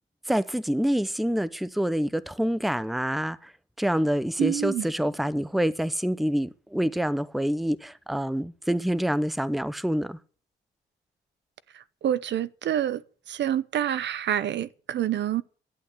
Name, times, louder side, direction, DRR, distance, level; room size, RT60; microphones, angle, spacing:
voice 1, 0.3-10.2, equal, ahead, 0.7 m, -27 dB
voice 2, 4.4-4.9 11.7-15.4, right 10 dB, 65° right, 0.8 m, -27 dB
11.5 x 8.4 x 8.2 m
cardioid pair, 90°, 20 cm